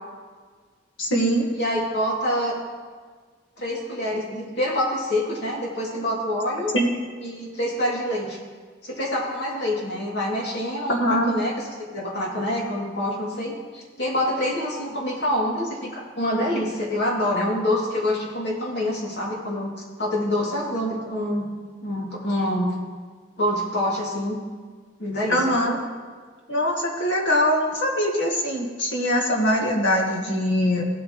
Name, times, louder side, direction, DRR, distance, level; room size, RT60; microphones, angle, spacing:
voice 1, 1.0-1.5 6.7-7.0 10.9-11.3 25.3-25.8 26.5-30.8, equal, 85° left, 0 dB, 1.9 m, -22 dB
voice 2, 1.5-2.5 3.6-6.7 7.2-8.4 8.8-11.5 11.9-19.7 20.0-21.5 21.8-22.7 23.4-24.4 25.0-25.5, left 1 dB, 65° left, -4 dB, 2.9 m, -26 dB
17.0 x 8.5 x 3.2 m, 1.5 s
head